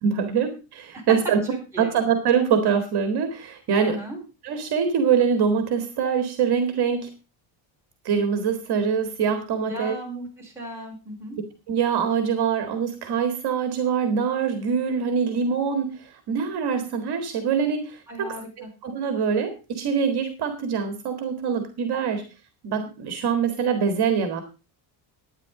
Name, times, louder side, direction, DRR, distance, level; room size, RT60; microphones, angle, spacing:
voice 1, 0.0-1.4 1.8-4.0 4.4-7.1 8.0-10.0 11.7-18.3 18.6-22.3 22.6-24.4, right 6 dB, 50° right, 7 dB, 2.0 m, -24 dB
voice 2, 1.5-1.9 3.8-4.2 9.6-11.4 18.1-18.7, right 1 dB, 5° right, -3 dB, 4.9 m, -36 dB
11.5 x 9.8 x 4.9 m, 0.31 s
cardioid pair, 160°, 48 cm